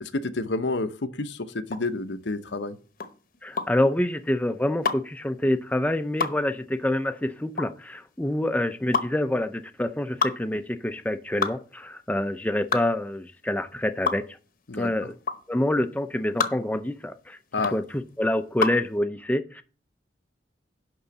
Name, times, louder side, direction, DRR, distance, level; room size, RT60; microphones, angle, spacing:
voice 1, 0.0-2.8 14.7-15.1 17.5-17.8, left 3 dB, 85° left, 10 dB, 0.9 m, -29 dB
sound 1, 1.6-18.9, left 5 dB, 50° left, 1.0 m, -31 dB
voice 2, 3.4-14.4 14.8-15.1 15.5-17.4 17.7-19.6, left 1 dB, 10° left, 9 dB, 0.5 m, -27 dB
11.0 x 3.8 x 7.1 m, 0.37 s
head